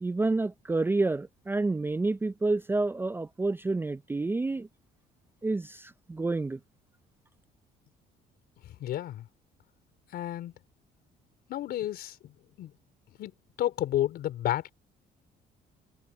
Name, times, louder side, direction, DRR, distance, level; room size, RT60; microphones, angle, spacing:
voice 1, 0.0-4.7 5.4-6.6, right 3 dB, 15° right, 0.4 m, -29 dB
voice 2, 8.8-9.2 10.1-10.5 11.5-12.3 12.6-12.7 13.2-13.3 13.6-14.7, left 12 dB, 70° left, 4.7 m, -31 dB
cardioid pair, 110°, 17 cm